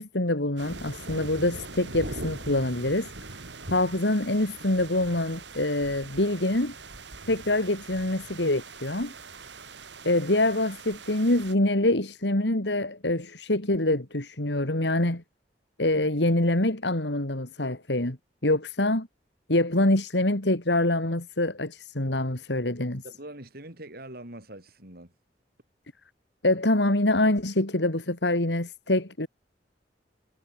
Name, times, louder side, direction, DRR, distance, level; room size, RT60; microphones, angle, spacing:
voice 1, 0.0-3.1 3.7-6.7 7.3-9.1 10.0-15.2 15.8-18.2 18.4-19.1 19.5-23.0 26.4-29.3, left 1 dB, 75° left, 3.0 m, -25 dB
sound 1, 0.6-11.6, right 3 dB, 85° right, 5.1 m, -42 dB
voice 2, 23.0-25.1, right 1 dB, 60° right, 7.7 m, -43 dB
head